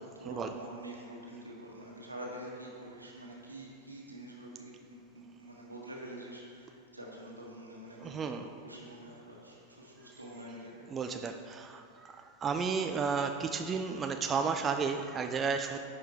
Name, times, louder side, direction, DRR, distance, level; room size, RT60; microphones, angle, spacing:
voice 1, 0.0-10.9, right 1 dB, 85° right, -3 dB, 1.5 m, -46 dB
voice 2, 8.0-8.5 10.9-15.8, right 5 dB, 25° right, 6 dB, 0.4 m, -33 dB
10.5 x 5.0 x 4.5 m, 2.4 s
figure-of-eight pair, 90°, 0 cm